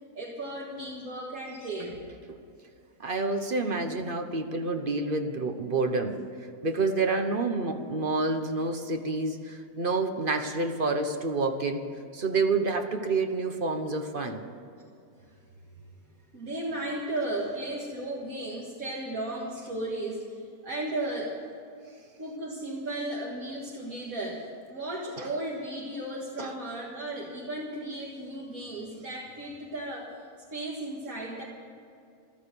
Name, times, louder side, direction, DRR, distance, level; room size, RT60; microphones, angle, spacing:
voice 1, 0.1-2.0 16.3-20.3 20.6-21.4 22.2-24.4 24.7-30.1 30.5-31.4, right 1 dB, 65° right, -3 dB, 2.2 m, -35 dB
voice 2, 3.0-6.2 6.6-11.8 12.1-14.4 25.2-25.3 26.4-26.5, right 3 dB, 40° right, 6 dB, 1.1 m, -28 dB
14.5 x 13.5 x 6.9 m, 2.6 s
omnidirectional pair, 1.6 m